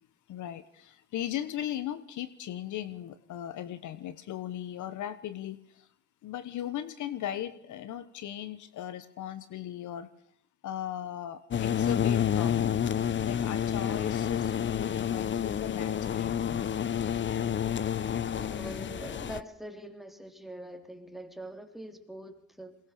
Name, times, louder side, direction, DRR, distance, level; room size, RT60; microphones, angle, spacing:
voice 1, 0.3-5.9 6.2-10.1 10.6-13.0 13.2-16.8, left 11 dB, 65° left, 14 dB, 1.3 m, -38 dB
sound 1, 11.5-19.4, left 9 dB, 35° left, 0.8 m, -29 dB
voice 2, 18.3-22.8, right 1 dB, ahead, 6 dB, 3.3 m, -44 dB
22.0 x 19.5 x 6.8 m, 0.66 s
supercardioid pair, 80°, 32 cm